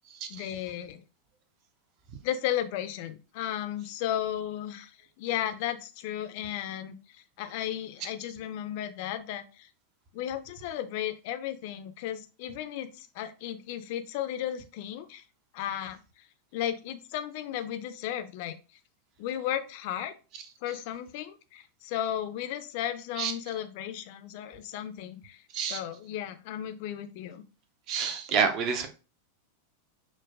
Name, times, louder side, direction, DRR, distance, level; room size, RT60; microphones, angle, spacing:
voice 1, 0.3-1.0 2.2-4.9 5.2-9.7 10.1-15.2 15.5-16.0 16.5-18.6 19.2-20.1 20.6-27.4, left 11 dB, 50° left, 10 dB, 0.4 m, -34 dB
voice 2, 27.9-28.9, right 6 dB, 40° right, 7 dB, 0.6 m, -28 dB
5.9 x 2.2 x 2.4 m, 0.33 s
figure-of-eight pair, 90°, 0 cm